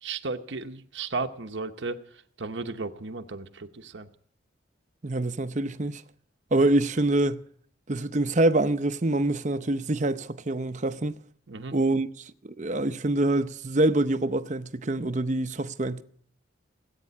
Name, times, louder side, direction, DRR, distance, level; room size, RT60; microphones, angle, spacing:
voice 1, 0.0-4.1 11.5-11.8, right 3 dB, 70° right, 0.9 m, -35 dB
voice 2, 5.0-6.0 6.5-7.4 7.9-11.1 11.7-16.0, right 2 dB, 40° right, 0.7 m, -25 dB
18.0 x 8.9 x 8.5 m
head